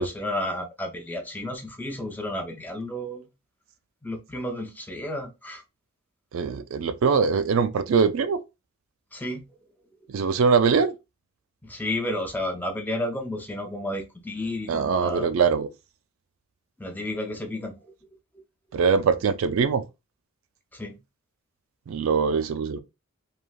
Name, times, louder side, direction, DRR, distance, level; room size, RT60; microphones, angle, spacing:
voice 1, 0.0-3.2 4.0-5.6 9.1-9.5 11.6-15.3 16.8-17.8 20.7-21.0, left 1 dB, 10° left, 0.4 m, -32 dB
voice 2, 6.3-8.4 10.1-10.9 14.7-15.7 18.7-19.8 21.9-22.8, right 5 dB, 65° right, 0.3 m, -22 dB
3.1 x 2.5 x 2.2 m
head